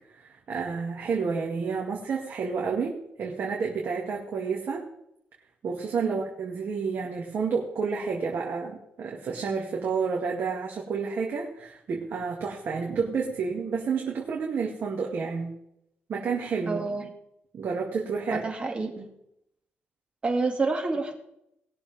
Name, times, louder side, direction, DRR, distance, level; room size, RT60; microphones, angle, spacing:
voice 1, 0.2-4.8 5.6-15.5 16.1-16.8 17.5-18.4, right 5 dB, 55° right, -2 dB, 2.1 m, -30 dB
voice 2, 16.7-17.1 18.3-19.1 20.2-21.2, right 3 dB, 25° right, 2 dB, 2.3 m, -28 dB
20.0 x 7.0 x 3.5 m, 0.78 s
cardioid pair, 120°, 4 cm